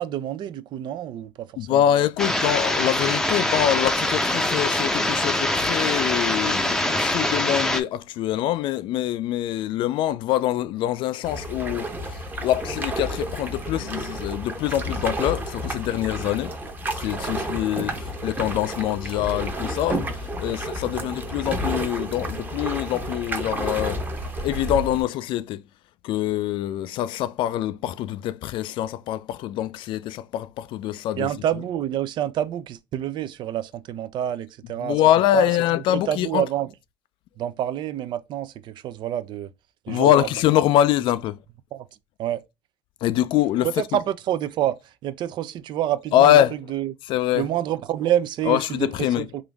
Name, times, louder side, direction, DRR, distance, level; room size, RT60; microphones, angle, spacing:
voice 1, 0.0-1.9 20.5-20.6 20.9-21.1 31.2-35.0 35.3-35.5 36.1-36.7 37.4-39.5 39.8-40.3 41.7-41.9 42.2-42.4 43.6-46.4 46.7-46.9 47.3-49.4, right 11 dB, 50° right, 0.4 m, -28 dB
voice 2, 1.6-16.5 16.9-24.0 24.4-25.6 26.0-31.3 34.8-36.5 39.9-41.4 43.0-43.7 46.1-46.5 47.1-47.5 48.5-49.3, left 12 dB, 60° left, 0.3 m, -24 dB
sound 1, 2.2-7.8, left 1 dB, 5° left, 0.6 m, -23 dB
sound 2, 11.2-25.0, right 1 dB, 20° right, 1.0 m, -31 dB
3.6 x 2.5 x 3.4 m
supercardioid pair, 95°, 10 cm